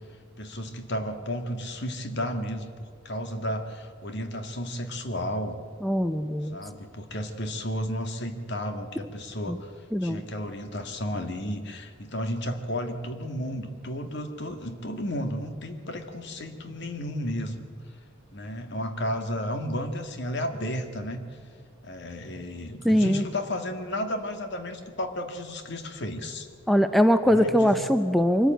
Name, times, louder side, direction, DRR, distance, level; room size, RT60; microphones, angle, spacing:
voice 1, 0.4-5.6 6.5-9.7 10.0-17.7 18.3-21.2 21.8-26.5 27.3-27.9, equal, 60° left, 7 dB, 1.9 m, -33 dB
voice 2, 5.8-6.6 9.5-9.6 9.9-10.2 22.8-23.2 26.7-28.5, equal, ahead, 9 dB, 0.6 m, -22 dB
23.5 x 14.0 x 9.2 m, 2.1 s
head